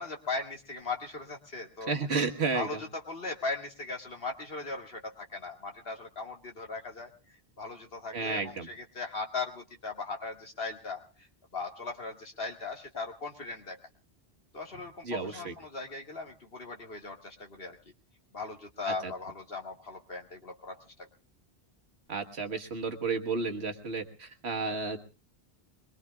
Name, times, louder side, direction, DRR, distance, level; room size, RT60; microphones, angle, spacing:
voice 1, 0.0-1.9 2.5-7.1 7.6-11.0 11.5-13.8 14.5-17.8 18.3-21.1, left 3 dB, 65° left, 2 dB, 2.1 m, -38 dB
voice 2, 1.9-2.7 8.1-8.7 15.0-15.5 18.9-19.1 22.1-25.0, right 4 dB, 85° right, 6 dB, 1.7 m, -32 dB
24.0 x 22.0 x 2.4 m, 0.36 s
omnidirectional pair, 1.1 m